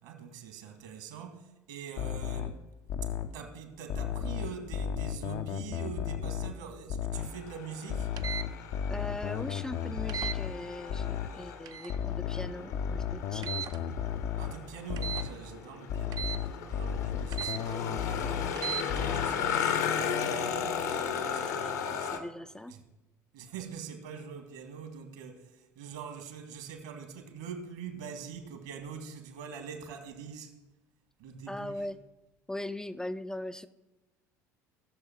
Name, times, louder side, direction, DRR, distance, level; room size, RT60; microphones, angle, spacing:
voice 1, 0.0-2.6 3.3-8.1 14.4-16.3 16.7-22.2 22.7-22.8 23.3-30.5 31.2-31.8, right 7 dB, 65° right, 1.8 m, -44 dB
sound 1, 2.0-3.4 3.9-6.6 6.9-7.4 7.9-11.4 11.9-14.6 14.9-15.4 15.9-18.6 18.9-19.4, left 9 dB, 55° left, 0.6 m, -34 dB
sound 2, 7.1-22.2, left 7 dB, 70° left, 1.2 m, -36 dB
sound 3, 8.2-8.5 10.1-10.4 11.6-12.0 13.4-13.8 15.0-15.3 16.1-16.4 17.3-17.6 18.5-18.8, right 8 dB, 45° right, 0.5 m, -36 dB
voice 2, 8.9-13.9 21.3-22.7 31.5-32.0 32.5-33.7, left 1 dB, 5° left, 0.4 m, -40 dB
17.5 x 6.8 x 4.4 m
figure-of-eight pair, 60°, 9 cm